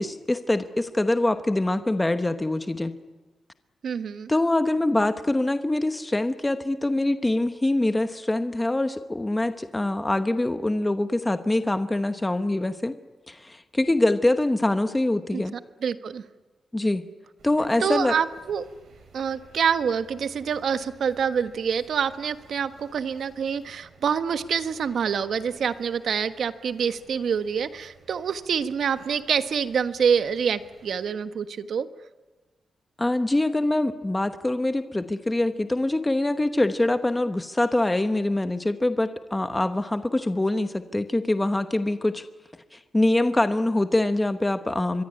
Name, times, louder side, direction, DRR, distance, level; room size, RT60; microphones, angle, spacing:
voice 1, 0.0-2.9 4.3-12.9 13.3-15.5 16.7-17.0 17.4-18.1 33.0-42.2 42.7-45.0, left 1 dB, 10° left, 9 dB, 1.0 m, -24 dB
voice 2, 3.8-4.3 15.3-16.2 17.8-18.7 19.1-31.9, right 7 dB, 60° right, 10 dB, 1.4 m, -26 dB
sound 1, 17.4-31.1, right 4 dB, 80° right, 8.0 m, -55 dB
24.5 x 23.5 x 9.9 m, 1.2 s
wide cardioid pair, 175°, 0 cm